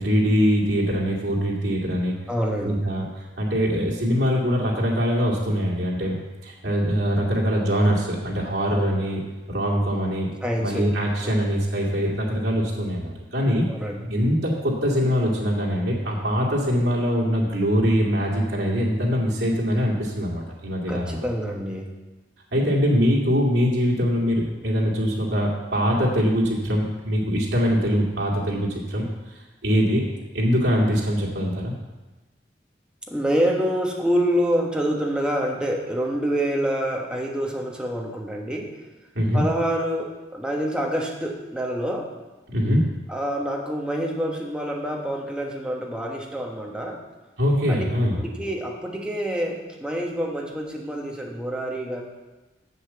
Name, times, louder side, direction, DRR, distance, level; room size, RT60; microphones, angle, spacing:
voice 1, 0.0-2.1 2.6-3.0 3.4-6.2 6.4-9.2 9.5-10.3 10.6-13.6 14.1-21.2 22.5-29.0 29.6-30.0 30.3-31.7 39.2-39.4 42.5-42.8 47.4-48.1, equal, 85° right, -3 dB, 2.1 m, -23 dB
voice 2, 2.3-2.8 10.4-10.8 11.2-11.4 13.7-14.2 20.9-21.9 33.1-38.7 39.3-42.1 43.1-47.0 47.7-47.8 48.2-52.0, equal, 5° right, -1 dB, 1.3 m, -27 dB
8.2 x 7.1 x 6.9 m, 1.1 s
head